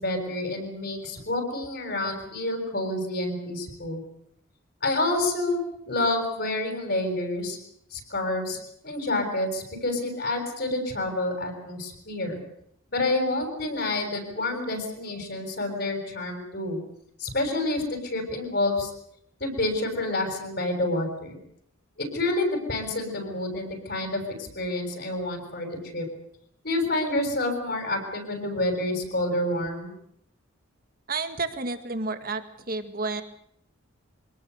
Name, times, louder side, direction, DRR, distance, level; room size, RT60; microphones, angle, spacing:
voice 1, 0.0-4.0 4.8-5.6 5.9-7.6 7.9-8.6 8.8-12.4 12.9-16.8 17.2-18.9 19.4-21.4 22.0-26.1 26.6-29.9, left 2 dB, 50° left, 5 dB, 6.8 m, -28 dB
voice 2, 31.1-32.4 32.7-33.2, right 3 dB, 45° right, 9 dB, 2.0 m, -30 dB
25.5 x 18.5 x 8.2 m, 0.71 s
head